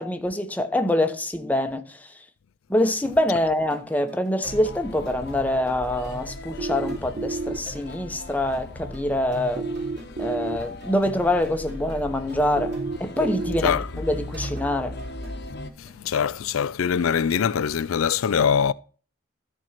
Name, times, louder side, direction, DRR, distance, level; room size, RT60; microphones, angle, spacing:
voice 1, 0.0-1.8 2.7-9.7 10.2-14.9, left 1 dB, 10° left, 0.9 m, -25 dB
sound 1, 3.6-10.3 10.6-12.0 12.3-15.9, right 2 dB, 55° right, 3.6 m, -44 dB
sound 2, 4.4-15.7, left 1 dB, 55° left, 1.1 m, -38 dB
sound 3, 6.6-7.6 9.6-10.6 12.6-13.6, right 3 dB, 35° right, 0.4 m, -30 dB
voice 2, 15.8-18.7, left 7 dB, 85° left, 0.4 m, -23 dB
13.5 x 4.5 x 5.8 m
head